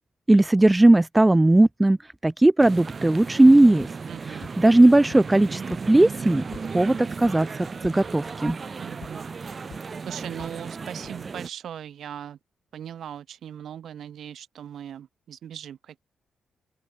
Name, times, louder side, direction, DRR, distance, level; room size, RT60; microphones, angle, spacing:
voice 1, 0.3-2.0 2.2-3.9 4.3-5.6 5.9-6.5 6.7-8.6, right 2 dB, 10° right, 0.8 m, -17 dB
sound 1, 2.6-11.5, right 5 dB, 35° right, 3.4 m, -35 dB
sound 2, 3.8-3.9 4.4-4.5 5.1-5.2 5.7-5.8 6.2-6.6 7.2-7.3 7.8-7.9 8.5-8.6 9.0-9.1 9.7-9.8 10.4-10.5 11.0-11.1, left 10 dB, 75° left, 4.7 m, -43 dB
voice 2, 4.1-4.5 8.8-9.3 10.1-12.4 12.7-16.0, right 9 dB, 70° right, 6.7 m, -39 dB
open air
cardioid pair, 105°, 0 cm